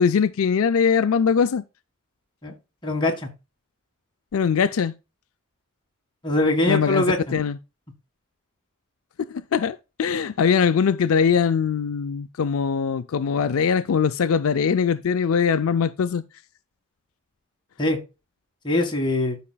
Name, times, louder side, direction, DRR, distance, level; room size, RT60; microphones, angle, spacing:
voice 1, 0.0-1.6 4.3-4.9 6.7-7.6 9.2-16.2, left 6 dB, 75° left, 0.4 m, -21 dB
voice 2, 2.8-3.3 6.2-7.3 17.8-18.0 18.6-19.4, left 2 dB, 20° left, 1.7 m, -22 dB
12.5 x 5.5 x 2.3 m
head